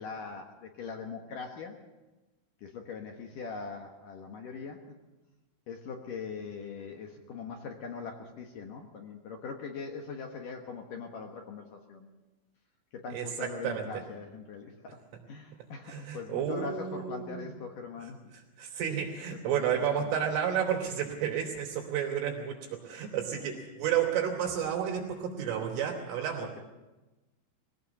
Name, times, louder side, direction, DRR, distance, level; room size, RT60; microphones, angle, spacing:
voice 1, 0.0-1.8 2.6-4.8 5.7-12.2 12.9-15.0 15.3-18.2 19.5-20.1 26.4-26.6, left 5 dB, 60° left, 2 dB, 2.4 m, -41 dB
voice 2, 13.1-14.0 15.8-17.5 18.6-26.5, right 8 dB, 90° right, 0 dB, 5.5 m, -31 dB
22.0 x 17.5 x 7.1 m, 1.1 s
omnidirectional pair, 5.5 m